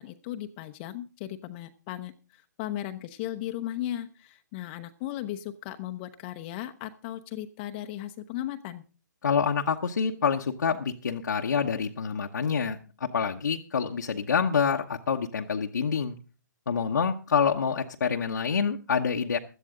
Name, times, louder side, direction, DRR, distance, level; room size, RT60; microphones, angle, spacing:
voice 1, 0.0-8.8, left 13 dB, 30° left, 7 dB, 0.7 m, -36 dB
voice 2, 9.2-16.2 16.7-19.4, left 6 dB, 75° left, 0 dB, 1.0 m, -27 dB
16.5 x 12.0 x 3.7 m, 0.35 s
hypercardioid pair, 135°, 10 cm